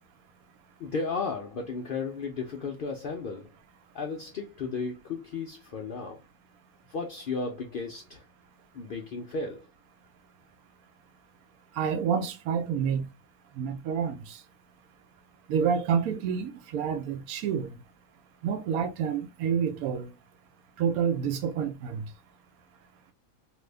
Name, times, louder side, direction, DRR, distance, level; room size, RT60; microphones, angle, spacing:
voice 1, 0.8-3.5 3.9-6.2 6.9-8.2 8.7-9.7, left 4 dB, 65° left, 0.5 m, -34 dB
voice 2, 11.8-13.1 13.6-14.4 15.5-17.8 18.4-20.1 20.8-22.1, right 7 dB, 90° right, 1.1 m, -28 dB
2.7 x 2.6 x 3.2 m
omnidirectional pair, 1.5 m